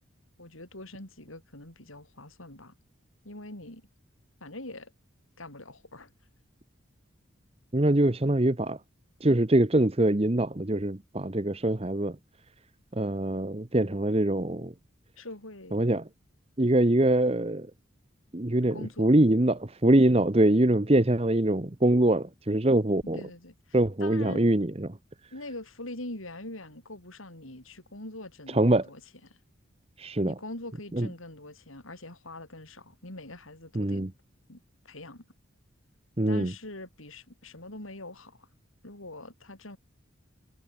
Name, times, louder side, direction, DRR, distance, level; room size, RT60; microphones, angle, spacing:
voice 1, 0.4-2.7 3.2-3.8 4.4-4.9 5.4-6.1 15.2-15.9 18.7-19.1 23.1-24.5 25.3-29.0 29.3-29.4 30.2-34.0 34.5-34.6 34.8-35.3 36.3-38.5 38.8-39.8, left 1 dB, 85° left, 7.3 m, -43 dB
voice 2, 7.7-8.8 9.2-12.2 12.9-14.7 15.7-16.1 16.6-17.7 18.3-23.2 23.7-25.0 28.5-28.9 30.0-30.4 30.9-31.1 33.7-34.1 36.2-36.5, right 1 dB, 30° right, 1.0 m, -24 dB
head